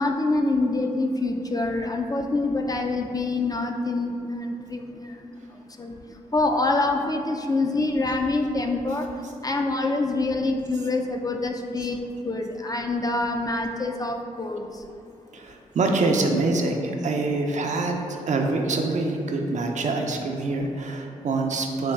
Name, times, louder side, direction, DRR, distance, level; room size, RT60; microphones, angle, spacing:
voice 1, 0.0-5.2 5.8-5.9 6.3-9.1 9.4-12.0 12.2-14.6, left 2 dB, 25° left, 3 dB, 0.3 m, -25 dB
voice 2, 15.3-21.9, right 3 dB, 55° right, 2 dB, 0.4 m, -25 dB
4.0 x 2.3 x 3.4 m, 2.4 s
supercardioid pair, 50°, 14 cm